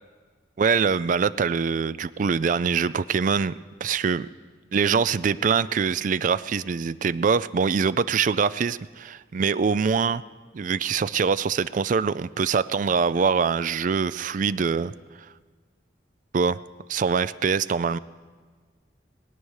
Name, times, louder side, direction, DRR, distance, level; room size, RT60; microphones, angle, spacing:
voice 1, 0.6-4.3 4.7-10.2 10.5-14.9 16.3-16.6 16.9-18.0, right 5 dB, 45° right, 17 dB, 0.4 m, -24 dB
20.5 x 9.4 x 6.4 m, 1.5 s
head